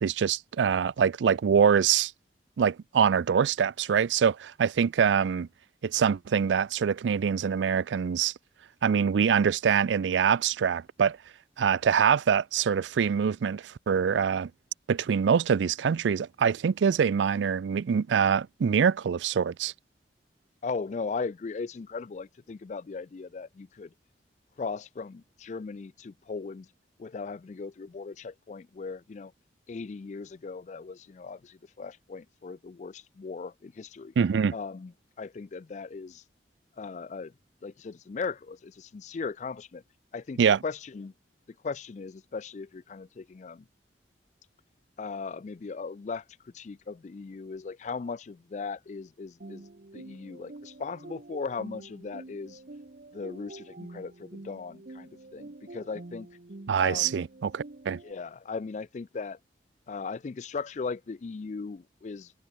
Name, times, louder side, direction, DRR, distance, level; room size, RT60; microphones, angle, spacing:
voice 1, 0.0-2.1 2.6-5.5 5.8-8.3 8.8-11.2 11.6-14.5 14.9-19.7 34.2-34.5 40.4-40.6 56.7-58.0, right 7 dB, 85° right, 0.4 m, -24 dB
voice 2, 20.6-23.9 24.6-26.7 27.0-29.3 29.7-34.1 34.5-34.9 35.2-36.2 36.8-37.3 37.6-39.8 40.1-41.1 41.6-43.7 45.0-49.6 49.9-52.6 53.1-56.3 56.8-57.2 58.0-59.4 59.9-62.3, left 4 dB, 40° left, 0.4 m, -38 dB
sound 1, 49.4-58.1, right 2 dB, 50° right, 0.9 m, -47 dB
head